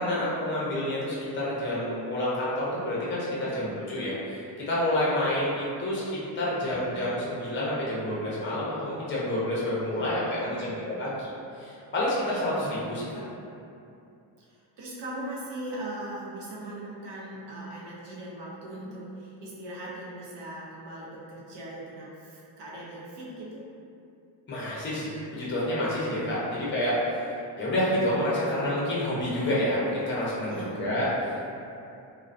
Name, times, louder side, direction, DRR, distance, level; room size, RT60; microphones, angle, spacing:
voice 1, 0.0-10.7 11.0-11.3 11.6-13.2 24.5-31.4, left 1 dB, 25° left, -7 dB, 0.6 m, -28 dB
voice 2, 9.9-10.8 14.5-23.6 26.1-26.7 30.5-30.8, right 1 dB, 60° right, -5 dB, 0.7 m, -40 dB
2.2 x 2.2 x 2.5 m, 2.6 s
cardioid pair, 105°, 46 cm